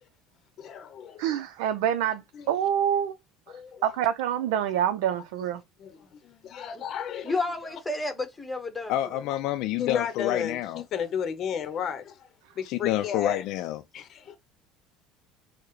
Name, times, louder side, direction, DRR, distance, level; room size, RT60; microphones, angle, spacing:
voice 1, 0.6-1.4 2.3-2.5 3.5-3.8 5.8-7.4 9.8-12.1 12.6-13.4 13.9-14.4, left 8 dB, 45° left, 0.8 m, -33 dB
voice 2, 1.2-2.2 2.5-3.1 3.8-5.6, right 10 dB, 90° right, 0.5 m, -26 dB
voice 3, 7.2-9.2, left 2 dB, 10° left, 1.1 m, -31 dB
voice 4, 8.9-10.8 12.6-13.8, left 13 dB, 65° left, 0.4 m, -28 dB
4.7 x 2.1 x 3.1 m
cardioid pair, 125°, 0 cm